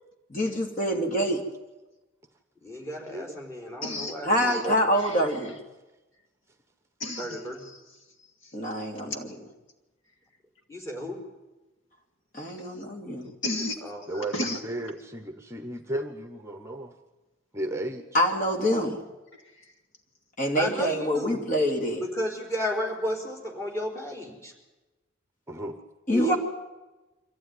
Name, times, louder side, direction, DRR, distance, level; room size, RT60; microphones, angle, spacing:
voice 1, 0.3-1.4 4.2-5.5 8.5-9.2 12.3-13.3 18.1-19.0 20.4-22.0 26.1-26.4, equal, 40° left, 2 dB, 2.9 m, -25 dB
voice 2, 2.6-5.0 7.2-7.6 10.7-11.2 13.8-14.3 20.5-21.4 22.0-24.5 26.1-26.4, left 1 dB, 15° left, 0 dB, 4.6 m, -33 dB
voice 3, 3.8-4.6 5.0-5.5 7.0-7.8 8.4-8.5 12.6-12.7 13.4-13.8 14.1-14.6 19.3-19.7, left 1 dB, 70° left, 5 dB, 2.1 m, -34 dB
voice 4, 14.6-16.9 17.5-18.1 25.5-25.8, right 1 dB, 15° right, 7 dB, 1.1 m, -34 dB
24.5 x 15.5 x 9.7 m, 1.1 s
head